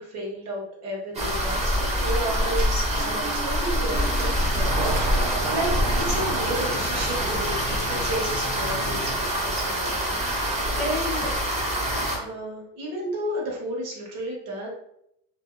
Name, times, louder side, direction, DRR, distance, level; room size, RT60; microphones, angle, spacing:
voice 1, 0.0-9.9 10.2-11.3 12.1-14.7, right 1 dB, 50° right, -2 dB, 1.1 m, -32 dB
sound 1, 1.1-12.2, equal, 20° right, 0.6 m, -25 dB
Engine starting, 2.5-9.9, right 3 dB, 75° right, 0.8 m, -35 dB
sound 2, 3.9-9.2, left 2 dB, 35° left, 0.4 m, -36 dB
2.5 x 2.3 x 2.5 m, 0.77 s
cardioid pair, 130°, 32 cm